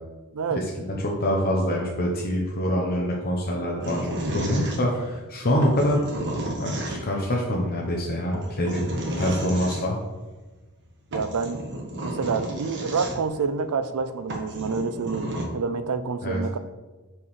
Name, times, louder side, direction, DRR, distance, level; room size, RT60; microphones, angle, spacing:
voice 1, 0.3-0.7 11.1-11.6 12.0-16.6, right 5 dB, 75° right, 12 dB, 0.5 m, -28 dB
voice 2, 1.0-6.0 6.6-8.8 9.2-10.0 16.2-16.4, equal, 45° left, -1 dB, 0.9 m, -25 dB
sound 1, 3.8-5.2 5.6-7.3 8.3-9.8 10.8-10.9 11.1-13.4 13.9-14.0 14.3-15.5, right 1 dB, 55° right, 1.3 m, -32 dB
8.7 x 4.7 x 3.2 m, 1.2 s
head